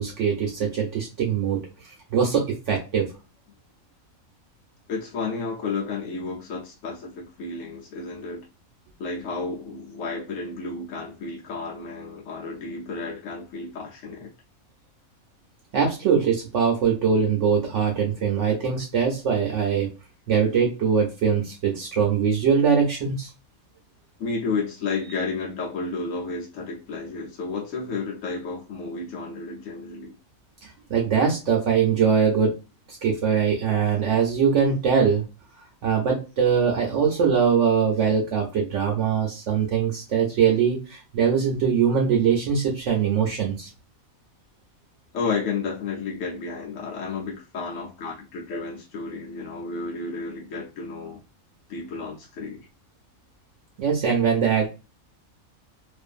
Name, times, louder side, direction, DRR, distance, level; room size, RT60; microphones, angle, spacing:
voice 1, 0.0-3.1 15.7-19.9 20.3-23.3 30.6-32.5 33.0-35.2 35.6-43.7 53.8-54.7, right 7 dB, 70° right, 0.9 m, -22 dB
voice 2, 4.9-8.5 9.0-14.3 24.2-30.1 45.1-51.2 51.7-52.7, left 4 dB, 70° left, 1.0 m, -32 dB
2.5 x 2.5 x 2.4 m
omnidirectional pair, 1.4 m